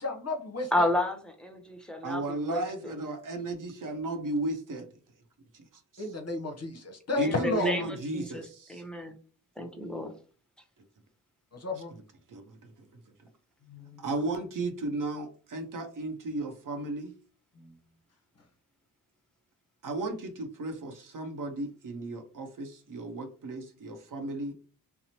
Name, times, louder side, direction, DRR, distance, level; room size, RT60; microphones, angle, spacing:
voice 1, 0.0-0.9 6.0-7.8 11.5-11.9 13.7-14.0 17.6-17.7, left 3 dB, 40° left, 4 dB, 0.7 m, -33 dB
voice 2, 0.7-2.9 7.2-9.2 9.6-10.2, left 1 dB, ahead, 4 dB, 0.7 m, -32 dB
voice 3, 2.0-4.9 5.5-5.6 7.2-8.8 12.3-12.9 14.0-17.1 19.8-24.5, right 2 dB, 50° right, 6 dB, 0.7 m, -34 dB
2.8 x 2.0 x 2.7 m, 0.38 s
supercardioid pair, 50°, 41 cm